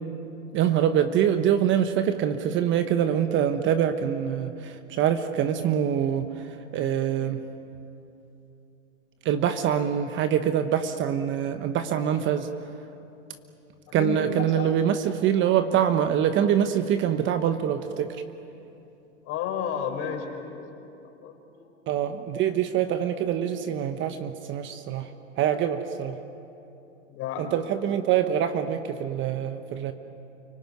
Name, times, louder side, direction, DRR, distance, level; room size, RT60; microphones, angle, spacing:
voice 1, 0.5-6.3 6.7-7.4 9.2-12.5 13.9-18.2 21.9-25.1 25.4-26.2 27.4-29.9, right 9 dB, 30° right, 9 dB, 1.2 m, -24 dB
voice 2, 13.9-14.7 19.2-20.6 21.0-21.7 27.1-27.6, left 7 dB, 40° left, 3 dB, 4.9 m, -33 dB
29.5 x 19.0 x 9.4 m, 2.8 s
hypercardioid pair, 115°, 37 cm